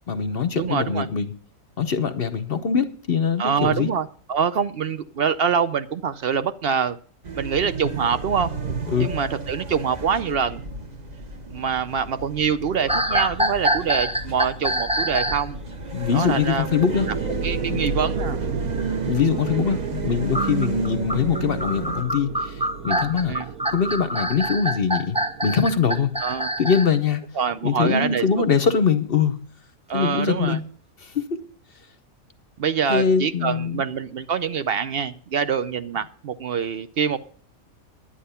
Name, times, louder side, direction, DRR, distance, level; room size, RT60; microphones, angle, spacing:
voice 1, 0.1-1.3 1.8-3.9 8.9-9.1 15.9-17.1 17.7-17.8 19.1-23.4 23.7-25.2 25.4-26.1 26.6-27.2 27.6-29.4 29.9-30.7 31.0-31.4 32.9-33.8, left 6 dB, 50° left, 11 dB, 0.9 m, -23 dB
voice 2, 0.6-1.1 3.4-7.0 7.4-8.5 9.0-10.6 11.5-15.6 16.1-16.7 17.4-18.4 23.3-23.4 26.2-26.5 27.4-28.3 29.9-30.6 32.6-37.2, right 7 dB, 55° right, 12 dB, 0.7 m, -25 dB
sound 1, 7.2-22.0, right 3 dB, 30° right, 1.2 m, -34 dB
sound 2, 12.9-15.5 20.3-26.9, right 1 dB, 5° right, 0.7 m, -25 dB
sound 3, 16.9-26.6, right 5 dB, 90° right, 1.2 m, -32 dB
10.0 x 10.0 x 5.6 m, 0.44 s
omnidirectional pair, 1.5 m